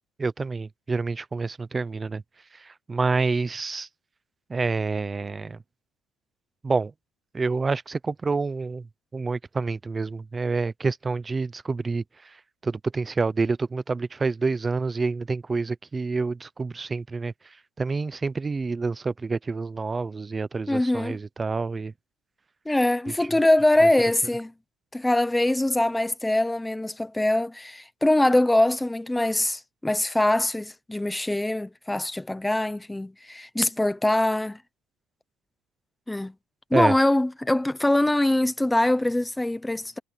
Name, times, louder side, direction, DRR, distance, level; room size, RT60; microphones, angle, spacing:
voice 1, 0.2-2.2 2.5-3.9 4.5-5.6 6.6-6.9 7.3-21.9 23.1-23.3 23.8-23.9 36.7-36.9, right 4 dB, 15° right, 0.6 m, -28 dB
voice 2, 20.7-21.2 22.7-24.5 24.9-34.6 36.1-36.3 36.7-40.0, left 1 dB, 5° left, 0.9 m, -23 dB
cardioid pair, 160°, 0 cm